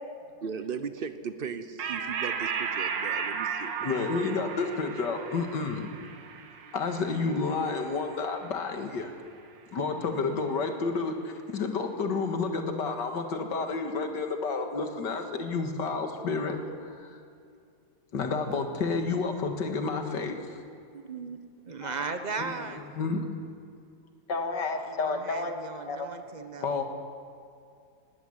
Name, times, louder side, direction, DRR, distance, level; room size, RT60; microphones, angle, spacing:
voice 1, 0.4-3.7, right 6 dB, 45° right, 0.7 m, -37 dB
sound 1, 1.8-8.7, right 6 dB, 75° right, 1.9 m, -35 dB
voice 2, 3.8-5.9 6.7-9.1 9.7-16.6 16.9-17.2 18.1-20.6 21.8-22.1 22.4-23.3 24.3-25.5 25.9-26.1 26.6-26.8, left 4 dB, 65° left, 2.4 m, -30 dB
voice 3, 20.9-21.4 21.6-22.8 24.9-26.8, right 4 dB, 30° right, 1.0 m, -37 dB
20.0 x 16.5 x 8.0 m
omnidirectional pair, 2.0 m